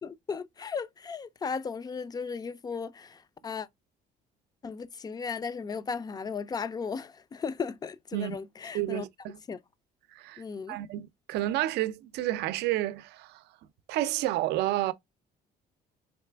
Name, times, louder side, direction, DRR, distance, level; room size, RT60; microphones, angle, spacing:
voice 1, 0.0-3.7 4.6-9.0 9.5-9.6 10.4-10.8, left 5 dB, 25° left, 0.4 m, -36 dB
voice 2, 8.7-9.4 10.2-13.4 13.9-14.9, right 15 dB, 80° right, 0.4 m, -30 dB
4.1 x 3.2 x 3.3 m
cardioid pair, 110°, 17 cm